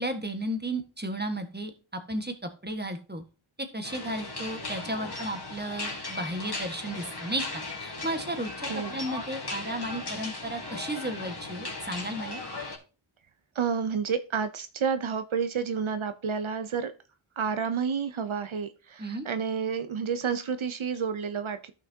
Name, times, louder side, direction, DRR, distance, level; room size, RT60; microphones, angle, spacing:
voice 1, 0.0-3.2 3.6-12.4 19.0-19.2, right 1 dB, 20° right, 6 dB, 1.5 m, -34 dB
sound 1, 3.8-12.8, left 2 dB, 50° left, 2.6 m, -37 dB
voice 2, 13.5-16.9 17.4-21.7, right 6 dB, 70° right, 11 dB, 0.8 m, -30 dB
13.5 x 6.0 x 2.8 m, 0.33 s
wide cardioid pair, 65°, 50 cm